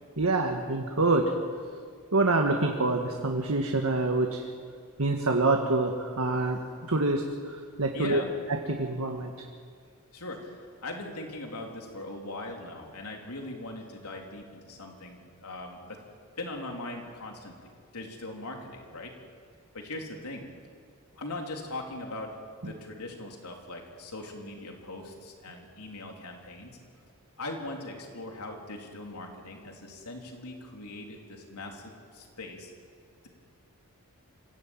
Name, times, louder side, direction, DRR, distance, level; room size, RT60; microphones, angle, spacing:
voice 1, 0.2-1.2 2.1-4.4 5.0-6.6 6.9-8.2 8.7-9.3, right 2 dB, 70° right, 2 dB, 1.7 m, -26 dB
voice 2, 7.9-8.3 10.1-16.0 16.4-19.2 19.7-20.5 21.2-22.4 22.6-26.8 27.4-32.7, left 2 dB, 85° left, 1 dB, 3.7 m, -40 dB
26.0 x 15.5 x 9.0 m, 2.1 s
head